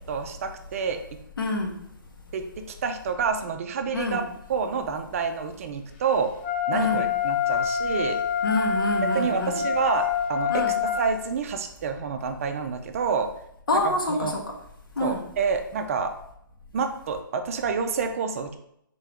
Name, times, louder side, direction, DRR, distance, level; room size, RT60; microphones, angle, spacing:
voice 1, 0.1-1.0 2.3-4.2 4.5-6.3 6.7-8.2 9.1-13.3 13.8-14.3 15.0-16.1 16.7-18.6, right 5 dB, 40° right, 7 dB, 0.4 m, -28 dB
voice 2, 1.4-1.7 3.9-4.3 6.7-7.1 8.4-9.7 10.5-10.7 13.7-14.5 15.0-15.2, left 2 dB, 75° left, 2 dB, 1.0 m, -27 dB
Wind instrument woodwind instrument, 6.4-11.0, left 6 dB, 35° left, 0.6 m, -26 dB
3.7 x 3.6 x 3.4 m, 0.73 s
hypercardioid pair, 145°, 12 cm